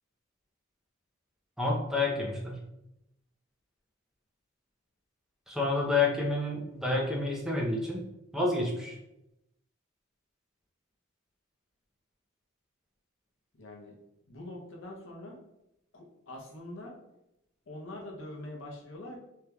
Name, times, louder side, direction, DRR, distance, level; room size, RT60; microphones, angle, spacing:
voice 1, 1.6-2.6 5.5-8.0 8.3-9.0, left 3 dB, 5° right, -3 dB, 0.6 m, -29 dB
voice 2, 13.5-14.0 14.3-15.4 15.9-16.9 17.7-19.2, left 1 dB, 65° left, -1 dB, 0.7 m, -44 dB
3.3 x 2.8 x 2.3 m, 0.88 s
head